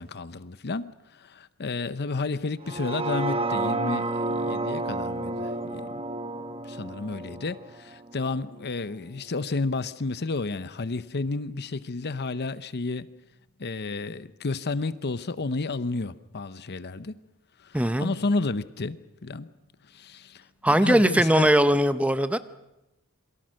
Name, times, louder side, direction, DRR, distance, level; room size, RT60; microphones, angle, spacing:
voice 1, 0.0-5.9 6.6-13.1 13.6-17.2 17.6-19.5 19.9-21.5, left 3 dB, 50° left, 0.8 m, -31 dB
sound 1, 2.6-8.8 9.2-9.3, right 2 dB, 25° right, 1.1 m, -31 dB
voice 2, 17.7-18.1 20.6-22.4, right 1 dB, 5° right, 0.8 m, -20 dB
28.0 x 23.0 x 6.5 m
head